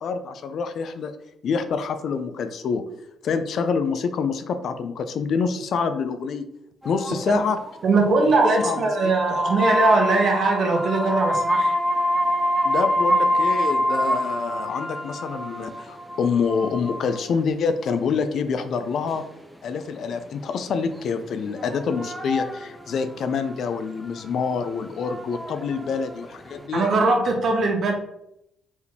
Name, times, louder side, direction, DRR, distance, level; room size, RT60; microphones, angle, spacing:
voice 1, 0.0-1.1 1.4-2.8 3.2-6.4 6.8-7.6 8.6-8.8 12.6-19.2 19.6-26.9, left 5 dB, 65° left, 9 dB, 0.5 m, -26 dB
sound 1, 6.8-7.8 8.4-17.2 19.2-19.3 21.6-23.0 23.4-23.5 23.7-24.2 24.8-26.5, equal, 5° right, 0.5 m, -26 dB
voice 2, 7.8-11.7 26.7-27.9, right 3 dB, 60° right, 2 dB, 1.0 m, -20 dB
4.5 x 3.5 x 2.9 m, 0.79 s
cardioid pair, 90°, 0 cm